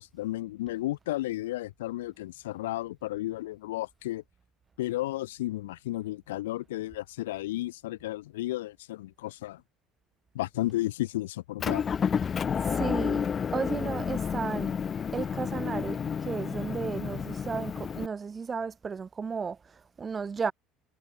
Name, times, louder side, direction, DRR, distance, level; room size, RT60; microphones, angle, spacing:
voice 1, 0.0-4.2 4.8-9.6 10.3-11.9, left 16 dB, 70° left, 1.6 m, -33 dB
Motor vehicle (road) / Engine, 11.6-18.1, left 7 dB, 35° left, 0.8 m, -30 dB
voice 2, 12.6-14.7 15.1-20.5, right 5 dB, 30° right, 1.8 m, -34 dB
figure-of-eight pair, 60°, 0 cm